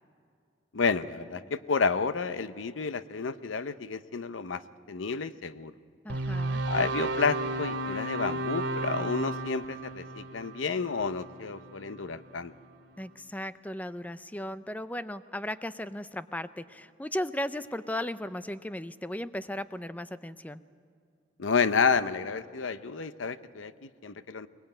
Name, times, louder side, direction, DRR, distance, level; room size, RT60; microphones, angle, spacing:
voice 1, 0.7-4.6 4.9-5.7 6.6-12.5 21.4-24.5, left 5 dB, 90° left, 14 dB, 0.7 m, -30 dB
voice 2, 6.0-6.6 13.0-20.6, left 1 dB, 10° left, 14 dB, 0.5 m, -36 dB
sound 1, 6.1-12.3, right 2 dB, 75° right, 2.6 m, -34 dB
22.0 x 20.5 x 9.0 m, 2.4 s
head